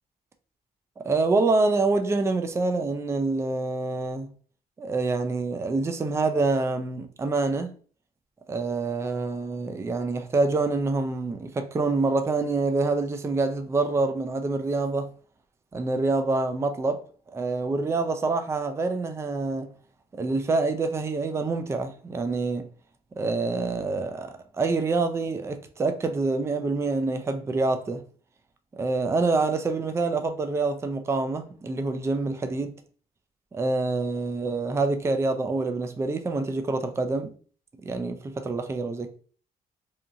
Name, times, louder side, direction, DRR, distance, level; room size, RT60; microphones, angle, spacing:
voice 1, 1.0-4.3 4.8-7.7 8.5-15.1 15.7-17.0 17.3-19.7 20.1-22.7 23.2-28.0 28.7-32.7 33.5-37.3 37.8-39.1, right 3 dB, 15° right, 0.3 m, -26 dB
2.8 x 2.5 x 2.3 m
cardioid pair, 105°, 16 cm